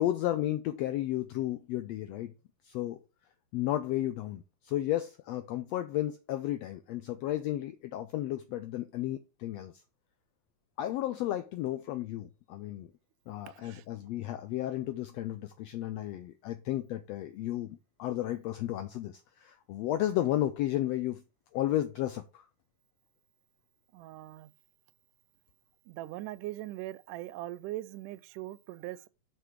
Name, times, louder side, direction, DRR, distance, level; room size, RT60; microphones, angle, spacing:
voice 1, 0.0-2.3 2.6-3.0 3.5-9.7 10.8-12.9 13.3-21.2 21.5-22.4, left 13 dB, 85° left, 1.4 m, -33 dB
voice 2, 13.5-13.9 23.9-24.5 25.9-29.1, right 16 dB, 90° right, 2.1 m, -41 dB
6.1 x 5.7 x 4.6 m
omnidirectional pair, 3.6 m